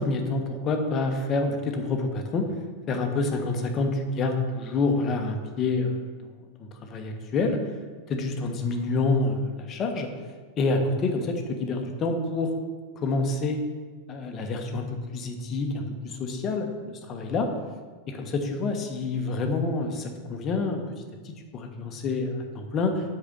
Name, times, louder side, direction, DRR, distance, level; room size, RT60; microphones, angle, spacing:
voice 1, 0.0-2.5 2.9-6.0 6.6-7.6 8.1-10.1 10.6-12.5 12.9-13.6 14.1-17.5 18.1-20.8 21.2-23.0, left 3 dB, 30° left, 4 dB, 1.3 m, -27 dB
8.6 x 5.9 x 6.3 m, 1.5 s
figure-of-eight pair, 90°, 0 cm